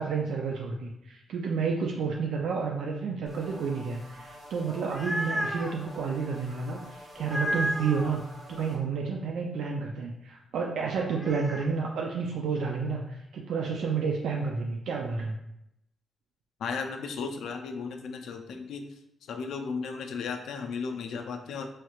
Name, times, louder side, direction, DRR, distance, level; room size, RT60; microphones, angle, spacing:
voice 1, 0.0-15.4, right 5 dB, 80° right, 0 dB, 0.3 m, -30 dB
sound 1, 3.3-8.8, equal, 50° right, 1.5 m, -48 dB
sound 2, 4.7-5.8 7.2-8.1 11.0-11.7, equal, 5° right, 0.4 m, -32 dB
voice 2, 16.6-18.9 19.2-21.7, left 5 dB, 75° left, 6 dB, 0.3 m, -35 dB
3.1 x 2.9 x 2.4 m, 0.82 s
cardioid pair, 70°, 0 cm